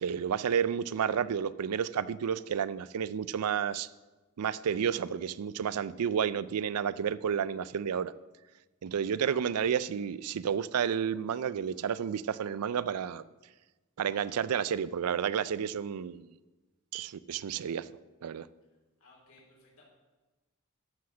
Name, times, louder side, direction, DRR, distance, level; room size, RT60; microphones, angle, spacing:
voice 1, 0.0-3.9 4.4-8.1 8.8-13.2 14.0-16.3 16.9-17.9 18.2-18.5, right 8 dB, 85° right, 17 dB, 0.4 m, -31 dB
voice 2, 19.0-19.9, left 2 dB, 65° left, -3 dB, 3.5 m, -60 dB
12.0 x 5.0 x 7.0 m, 1.2 s
head